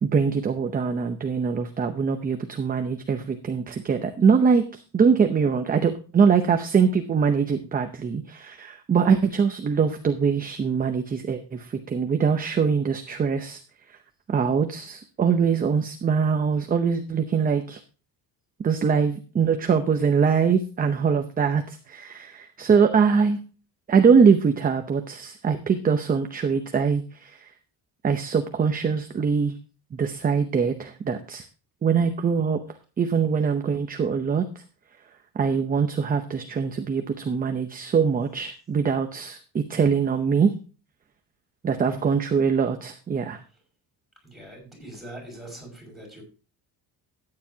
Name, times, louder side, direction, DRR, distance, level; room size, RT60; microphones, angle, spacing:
voice 1, 0.0-13.6 14.3-17.8 18.6-23.4 23.9-27.5 28.0-29.5 29.9-31.4 31.8-32.6 33.0-34.4 35.3-40.5 41.6-43.4, right 6 dB, 20° right, 6 dB, 0.7 m, -23 dB
voice 2, 41.7-42.1 44.2-46.2, right 1 dB, ahead, -1 dB, 5.9 m, -43 dB
13.5 x 9.7 x 2.8 m, 0.35 s
cardioid pair, 165°, 40 cm